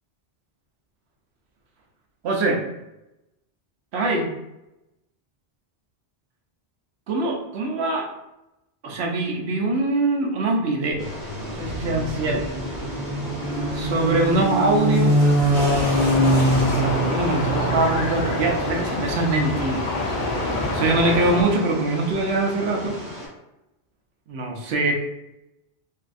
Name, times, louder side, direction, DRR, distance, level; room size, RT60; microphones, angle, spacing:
voice 1, 2.2-2.6 3.9-4.3 7.1-8.1 8.8-11.1 11.4-12.5 13.7-15.2 16.6-19.9 20.4-23.0 24.3-24.9, right 2 dB, 85° right, 1 dB, 0.9 m, -23 dB
sound 1, 10.9-18.6, equal, 40° right, 0.8 m, -23 dB
sound 2, 11.0-23.3, equal, 20° right, 1.1 m, -36 dB
sound 3, 15.5-21.4, left 2 dB, 55° left, 0.6 m, -27 dB
3.1 x 2.6 x 2.5 m, 0.93 s
omnidirectional pair, 1.1 m